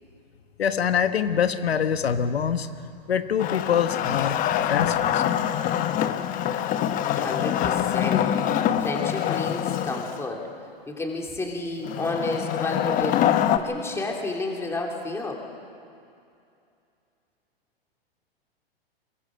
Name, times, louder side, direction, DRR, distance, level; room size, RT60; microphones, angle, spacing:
voice 1, 0.6-2.7 3.1-5.2 8.7-8.9, left 8 dB, 90° left, 9 dB, 1.2 m, -25 dB
Wood, 3.4-10.2 11.8-13.6, left 10 dB, 25° left, 1.0 m, -25 dB
voice 2, 7.1-8.3 8.8-10.4 10.9-13.2 13.6-15.4, left 2 dB, 10° left, 0 dB, 2.9 m, -31 dB
22.5 x 21.5 x 6.3 m, 2.6 s
hypercardioid pair, 130°, 30 cm